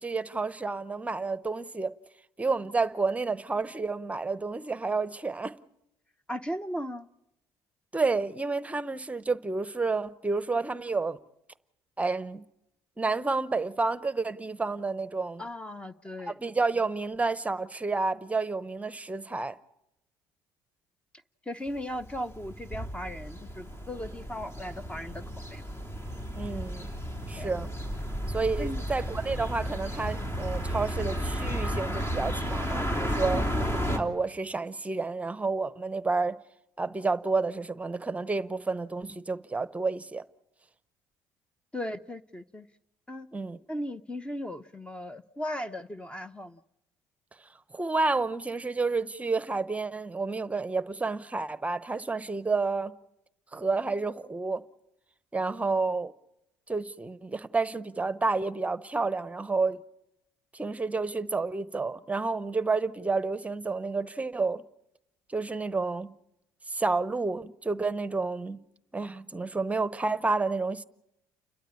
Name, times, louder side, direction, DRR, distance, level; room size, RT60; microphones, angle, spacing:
voice 1, 0.0-1.9 2.4-5.6 7.9-11.2 12.0-12.4 13.0-15.4 16.2-19.6 26.3-26.9 27.3-27.7 28.3-33.5 33.9-36.4 36.8-40.2 43.3-43.6 47.7-52.9 53.5-54.6 55.3-56.1 56.7-59.8 60.5-64.6 65.3-66.1 66.7-68.6 68.9-70.8, right 3 dB, 15° right, 0.9 m, -30 dB
voice 2, 6.3-7.1 15.4-16.3 21.5-25.2 25.5-25.6 27.4-27.5 28.6-28.8 41.7-42.7 43.1-43.3 43.7-46.6, equal, 15° left, 0.8 m, -37 dB
sound 1, 22.0-34.0, equal, 35° left, 3.3 m, -33 dB
30.0 x 12.5 x 8.6 m
supercardioid pair, 75°, 8 cm